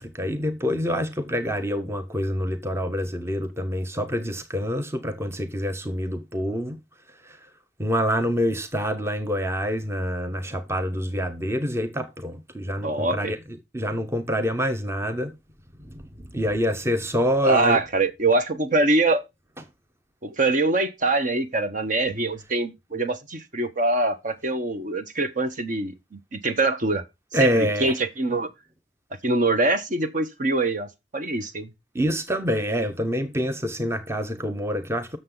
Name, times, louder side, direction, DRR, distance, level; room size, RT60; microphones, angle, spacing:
voice 1, 0.0-6.8 7.8-13.4 13.7-15.3 16.2-17.8 27.3-27.9 31.9-35.2, equal, 15° right, 0.8 m, -26 dB
voice 2, 12.8-13.3 17.4-19.2 20.2-27.0 27.4-28.5 29.2-30.9 31.1-31.7, right 2 dB, 45° right, 0.9 m, -24 dB
7.5 x 6.7 x 3.8 m
head